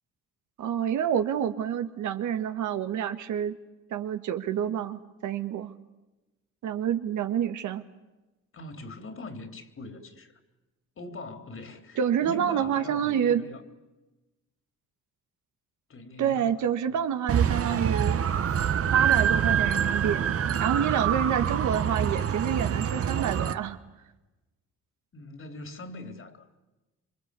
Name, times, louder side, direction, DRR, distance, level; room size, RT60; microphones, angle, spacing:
voice 1, 0.6-3.5 3.9-5.7 6.6-7.8 12.0-13.4 16.2-18.2 18.9-20.2 20.6-23.8, right 9 dB, 75° right, 1.7 m, -28 dB
voice 2, 8.5-10.4 11.0-13.6 15.9-16.9 25.1-26.5, left 2 dB, 45° left, 3.5 m, -42 dB
sound 1, 17.3-23.5, right 8 dB, 50° right, 1.3 m, -25 dB
27.5 x 25.0 x 8.4 m
cardioid pair, 90°, 30 cm